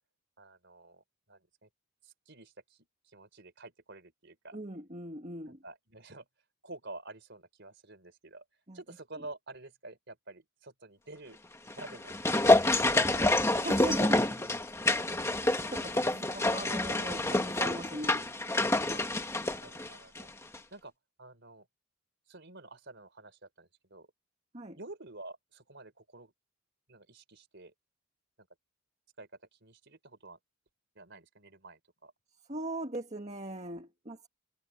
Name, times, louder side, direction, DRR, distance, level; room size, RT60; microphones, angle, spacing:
voice 1, 0.4-1.7 2.0-2.8 3.1-4.6 5.5-6.3 6.6-8.4 8.7-11.4 11.7-12.1 12.9-13.2 18.9-19.1 19.5-20.3 20.7-20.9 21.2-21.7 22.3-24.1 24.8-26.3 26.9-27.7 28.4-28.5 29.2-30.4 30.9-32.1, right 2 dB, 55° right, 4.5 m, -49 dB
voice 2, 4.5-5.6 8.7-8.8 13.1-14.5 15.3-18.3 24.5-24.8 32.5-34.3, right 1 dB, 30° right, 2.1 m, -40 dB
sound 1, 11.7-20.3 20.5-20.6, left 2 dB, 15° left, 1.5 m, -27 dB
head